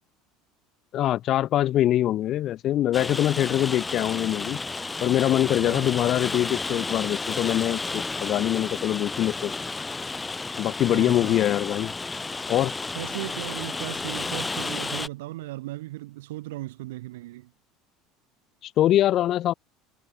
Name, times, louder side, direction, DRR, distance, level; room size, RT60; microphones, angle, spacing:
voice 1, 0.9-4.6 5.0-9.5 10.6-11.9 12.5-12.7 18.6-19.5, left 13 dB, 50° left, 0.7 m, -23 dB
Rain, 2.9-15.1, left 3 dB, 15° left, 3.7 m, -32 dB
voice 2, 10.9-11.5 13.0-17.5, right 17 dB, 90° right, 2.3 m, -37 dB
supercardioid pair, 100°, 0 cm